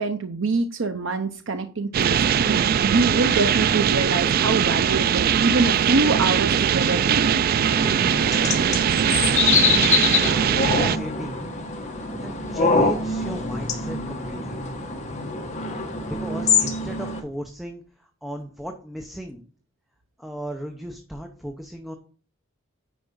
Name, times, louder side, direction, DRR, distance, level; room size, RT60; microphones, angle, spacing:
voice 1, 0.0-7.5, right 3 dB, 65° right, 7 dB, 0.7 m, -25 dB
sound 1, 1.9-11.0, right 8 dB, 45° right, 0.3 m, -21 dB
sound 2, 7.6-17.2, left 4 dB, 35° left, 1.6 m, -25 dB
voice 2, 10.7-11.4 12.2-14.6 16.1-19.4 20.2-22.0, equal, ahead, 3 dB, 0.8 m, -36 dB
9.3 x 4.8 x 5.3 m, 0.40 s
head